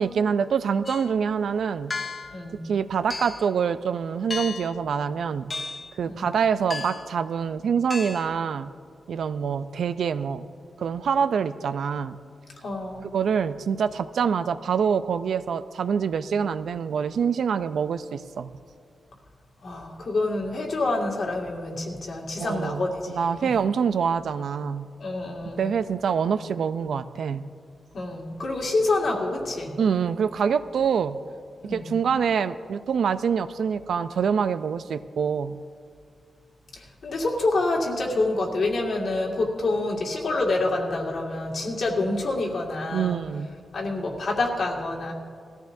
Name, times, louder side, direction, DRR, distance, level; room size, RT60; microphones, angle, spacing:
voice 1, 0.0-1.9 2.6-5.5 6.0-8.7 9.1-10.5 10.8-12.2 13.1-18.5 22.4-24.9 25.6-27.5 29.8-31.2 31.7-35.6 42.9-43.5, right 6 dB, 85° right, 12 dB, 0.4 m, -25 dB
sound 1, 0.9-1.2 1.9-2.4 3.1-3.5 4.3-4.8 5.5-5.9 6.7-7.1 7.9-8.3, left 4 dB, 30° left, 0.5 m, -34 dB
voice 2, 2.3-2.6 6.0-6.3 12.6-13.1 19.6-23.5 25.0-25.6 27.9-29.8 31.6-31.9 36.7-43.2 43.7-45.1, left 2 dB, 60° left, -1 dB, 2.0 m, -27 dB
20.0 x 14.5 x 2.6 m, 2.2 s
wide cardioid pair, 140°, 0 cm